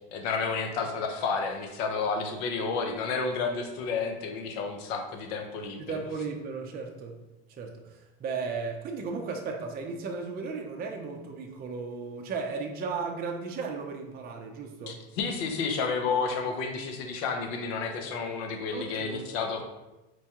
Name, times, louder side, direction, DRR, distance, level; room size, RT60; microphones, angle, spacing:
voice 1, 0.1-5.8 14.9-19.6, left 4 dB, 75° left, 4 dB, 0.7 m, -31 dB
voice 2, 5.8-7.2 7.5-15.0 18.7-19.3, right 4 dB, 30° right, 2 dB, 0.5 m, -35 dB
4.5 x 2.2 x 2.9 m, 1.0 s
supercardioid pair, 95°, 32 cm